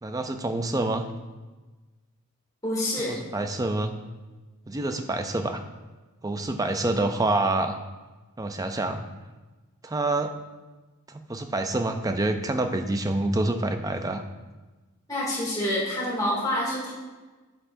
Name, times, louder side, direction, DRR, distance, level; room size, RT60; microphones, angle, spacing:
voice 1, 0.0-1.0 3.1-3.9 4.7-5.6 6.2-7.8 8.4-9.0 9.8-10.3 11.1-14.2, right 2 dB, 15° right, 7 dB, 0.4 m, -27 dB
voice 2, 2.6-3.2 15.1-16.9, left 1 dB, 15° left, -6 dB, 2.6 m, -27 dB
8.1 x 7.8 x 2.7 m, 1.2 s
head